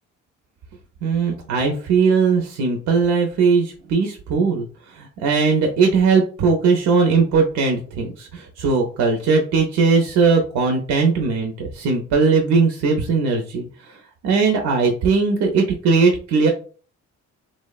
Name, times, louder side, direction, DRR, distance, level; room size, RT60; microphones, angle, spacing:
voice 1, 1.0-16.5, right 4 dB, 70° right, 3 dB, 0.5 m, -19 dB
2.8 x 2.0 x 2.3 m, 0.40 s
cardioid pair, 90°, 30 cm